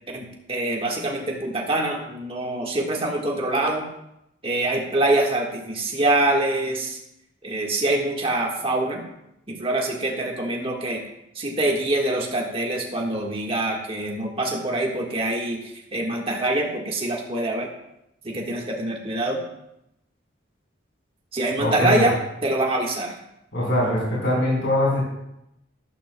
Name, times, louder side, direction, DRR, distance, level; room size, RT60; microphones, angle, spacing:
voice 1, 0.1-3.8 4.4-7.0 7.4-9.0 9.5-11.0 11.3-17.7 18.2-19.4 21.3-22.1 22.4-23.1, right 2 dB, 30° right, 0 dB, 1.6 m, -25 dB
voice 2, 21.6-22.1 23.5-25.0, left 1 dB, 75° left, -6 dB, 4.4 m, -22 dB
12.5 x 12.0 x 2.3 m, 0.82 s
head